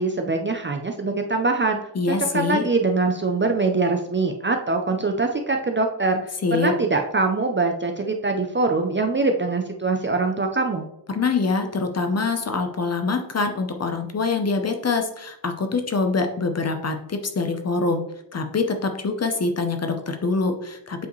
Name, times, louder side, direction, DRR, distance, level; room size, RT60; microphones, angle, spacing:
voice 1, 0.0-1.8 2.1-6.2 6.5-10.9, right 3 dB, 25° right, 4 dB, 0.5 m, -23 dB
voice 2, 2.0-2.6 6.4-6.7 11.1-18.0 18.3-21.1, left 4 dB, 35° left, 6 dB, 0.7 m, -24 dB
8.1 x 4.7 x 3.1 m, 0.79 s
wide cardioid pair, 175°, 45 cm